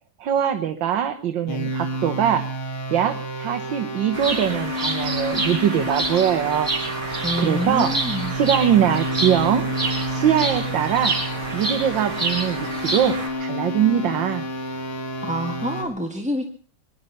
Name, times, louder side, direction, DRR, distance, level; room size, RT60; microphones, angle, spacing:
voice 1, 0.2-2.5 2.9-6.7 7.4-8.0 8.3-9.6 10.1-11.2 11.5-14.4, right 9 dB, 65° right, 8 dB, 1.7 m, -22 dB
sound 1, 1.5-15.8, equal, 70° left, 3.1 m, -30 dB
Bird vocalization bird call bird song, 4.1-13.3, right 2 dB, 40° right, 5.1 m, -28 dB
voice 2, 7.2-8.3 15.2-16.5, equal, 5° right, 2 dB, 1.2 m, -27 dB
23.5 x 11.0 x 5.5 m, 0.42 s
omnidirectional pair, 2.4 m